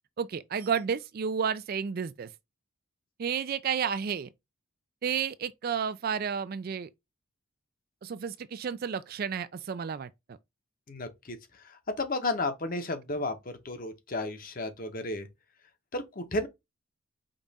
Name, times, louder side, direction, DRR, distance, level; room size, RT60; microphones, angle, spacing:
voice 1, 0.2-2.3 3.2-4.3 5.0-6.9 8.0-10.4, right 7 dB, 45° right, 0.3 m, -31 dB
voice 2, 10.9-11.4 12.0-13.4 13.6-15.3 15.9-16.5, left 2 dB, 40° left, 0.8 m, -32 dB
5.2 x 2.5 x 4.0 m
head